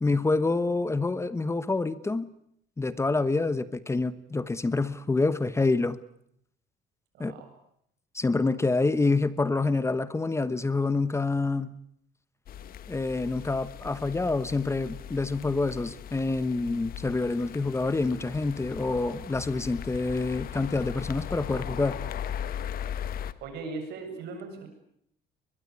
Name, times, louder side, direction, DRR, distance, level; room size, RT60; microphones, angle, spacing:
voice 1, 0.0-2.3 2.8-6.0 7.2-7.3 8.1-11.7 12.9-22.0, left 3 dB, 15° left, 15 dB, 1.1 m, -27 dB
voice 2, 7.1-7.5 23.4-24.7, right 4 dB, 80° right, 6 dB, 7.6 m, -38 dB
sound 1, 12.5-23.3, left 9 dB, 60° left, 1.3 m, -38 dB
22.5 x 21.5 x 9.7 m, 0.72 s
cardioid pair, 110°, 17 cm